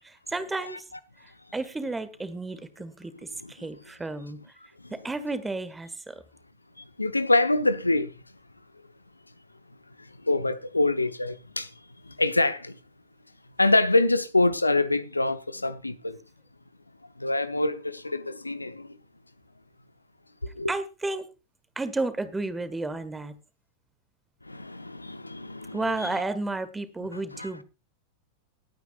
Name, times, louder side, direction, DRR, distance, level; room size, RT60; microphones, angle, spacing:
voice 1, 0.0-0.8 1.2-4.5 4.9-6.2 20.7-21.3 21.7-23.4 25.7-27.6, right 2 dB, 10° right, 1.6 m, -32 dB
voice 2, 7.0-8.1 10.2-11.7 12.1-12.8 13.6-16.2 17.2-19.0 20.6-20.7 24.5-26.1 27.1-27.5, left 2 dB, 85° left, 0.8 m, -25 dB
20.0 x 9.2 x 2.4 m
figure-of-eight pair, 90°, 0 cm